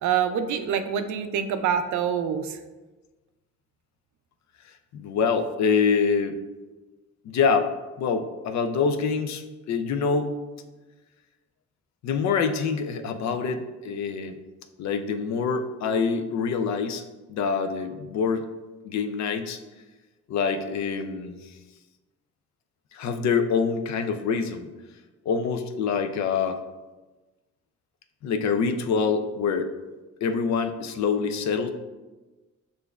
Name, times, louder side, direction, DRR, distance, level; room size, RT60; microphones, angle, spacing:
voice 1, 0.0-2.6, right 8 dB, 75° right, 9 dB, 0.5 m, -26 dB
voice 2, 4.9-6.4 7.2-7.7 8.0-10.3 12.0-14.4 14.8-17.0 17.3-18.5 18.8-19.6 20.3-21.6 22.9-24.7 25.3-26.6 28.2-29.7 30.2-31.7, left 5 dB, 65° left, 8 dB, 0.5 m, -25 dB
6.7 x 2.6 x 2.3 m, 1.2 s
cardioid pair, 90°, 30 cm